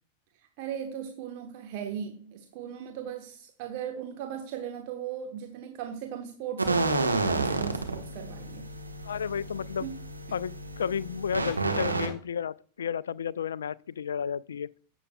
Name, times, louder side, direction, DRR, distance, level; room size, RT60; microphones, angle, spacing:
voice 1, 0.6-8.7 9.8-9.9, right 9 dB, 45° right, 1.1 m, -38 dB
sound 1, 6.6-12.1, right 3 dB, 80° right, 1.2 m, -30 dB
voice 2, 9.0-9.9 10.3-14.7, left 7 dB, 65° left, 0.3 m, -32 dB
15.5 x 7.0 x 2.3 m
figure-of-eight pair, 90°, 0 cm